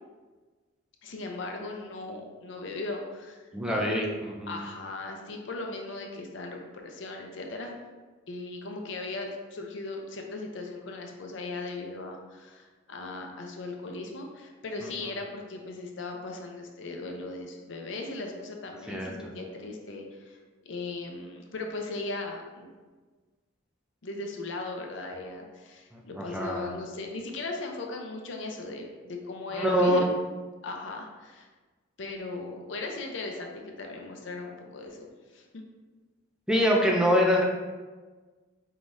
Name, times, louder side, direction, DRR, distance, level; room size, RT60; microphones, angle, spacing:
voice 1, 1.0-3.4 3.7-4.0 4.5-7.7 8.3-22.7 24.0-30.1 30.6-31.5 32.0-35.1 35.3-35.6, left 3 dB, 65° left, 2 dB, 0.6 m, -38 dB
voice 2, 3.5-4.7 14.8-14.9 18.9-19.1 25.9-26.7 29.5-30.0 36.5-37.4, equal, 5° right, -1 dB, 0.4 m, -25 dB
4.6 x 3.7 x 2.6 m, 1.3 s
head